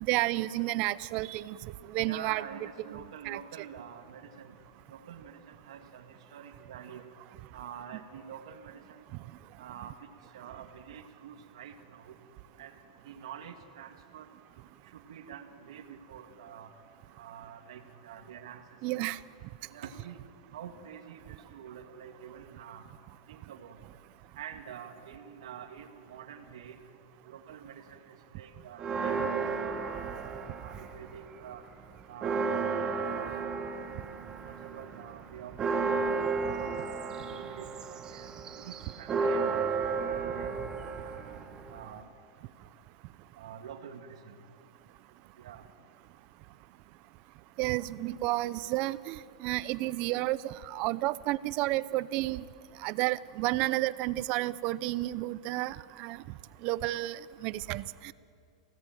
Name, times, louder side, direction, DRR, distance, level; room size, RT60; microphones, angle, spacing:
voice 1, 0.0-1.6 1.9-2.4 2.9-3.4 18.8-19.2 47.6-52.4 52.8-56.2 56.6-58.1, right 17 dB, 45° right, 17 dB, 0.8 m, -31 dB
voice 2, 2.0-4.6 4.9-7.1 7.5-9.0 9.6-9.9 10.3-12.1 12.6-12.7 13.0-14.3 14.9-16.7 17.2-18.6 18.9-19.0 19.7-20.2 20.5-22.8 23.3-23.8 24.4-26.8 27.3-30.0 30.4-31.6 32.1-32.5 32.9-33.7 34.3-35.5 36.3-36.8 37.1-38.3 38.6-41.2 41.7-42.0 43.4-44.4 45.4-45.6, right 8 dB, 75° right, 4 dB, 2.1 m, -47 dB
Church bell, 28.8-31.2 31.5-31.6 32.0-42.0, right 4 dB, 25° right, 1.7 m, -33 dB
28.0 x 18.0 x 9.2 m, 2.4 s
supercardioid pair, 140°, 3 cm